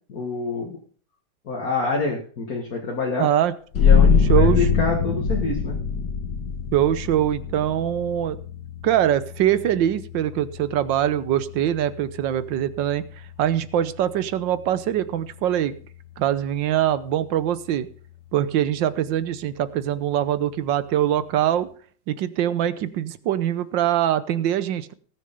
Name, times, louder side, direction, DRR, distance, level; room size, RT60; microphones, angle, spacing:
voice 1, 0.1-0.8 1.5-3.3 3.8-5.7, left 3 dB, 55° left, -1 dB, 2.2 m, -27 dB
voice 2, 3.2-3.5 4.3-4.6 6.7-8.4 8.8-13.0 13.4-15.7 16.2-17.9 18.3-21.7 22.1-24.9, right 11 dB, 85° right, 15 dB, 1.5 m, -23 dB
sound 1, 3.7-15.0, left 6 dB, 70° left, 2.3 m, -24 dB
17.5 x 6.7 x 5.1 m, 0.43 s
omnidirectional pair, 2.0 m